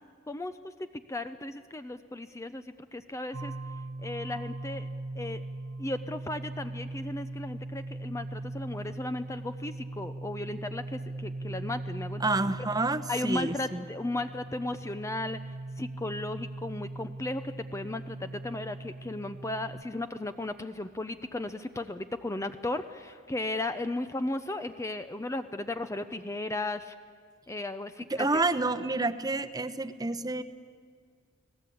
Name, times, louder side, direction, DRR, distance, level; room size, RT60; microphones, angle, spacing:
voice 1, 0.3-2.6 2.9-3.5 4.0-4.9 5.2-5.4 5.8-12.4 13.1-15.4 15.8-26.9 27.5-28.4, left 2 dB, 15° left, 10 dB, 0.5 m, -35 dB
sound 1, 3.3-19.8, right 2 dB, 60° right, 1.0 m, -40 dB
voice 2, 12.2-13.8 28.1-30.4, right 2 dB, 20° right, 9 dB, 0.8 m, -29 dB
30.0 x 18.5 x 8.5 m, 2.1 s
head